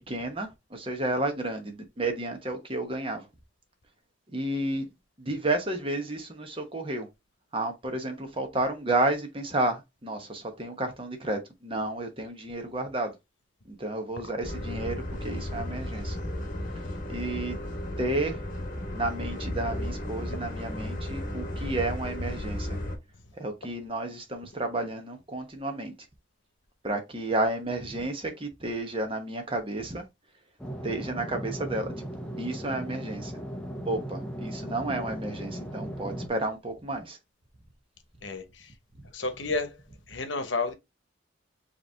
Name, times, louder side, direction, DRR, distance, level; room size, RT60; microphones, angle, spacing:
voice 1, 0.1-3.3 4.3-4.9 5.2-7.1 7.5-13.2 13.7-15.0 15.2-16.2 17.1-17.6 18.0-18.4 18.9-22.8 23.4-25.9 26.8-30.0 30.8-31.9 32.4-33.3 33.8-37.2 39.4-39.5, right 2 dB, 25° right, 1.0 m, -31 dB
sound 1, 14.4-23.0, left 1 dB, 40° left, 1.1 m, -34 dB
sound 2, 30.6-36.3, equal, 5° left, 0.7 m, -37 dB
voice 2, 39.1-39.7 40.1-40.7, left 3 dB, 65° left, 1.0 m, -30 dB
4.9 x 3.0 x 3.3 m
head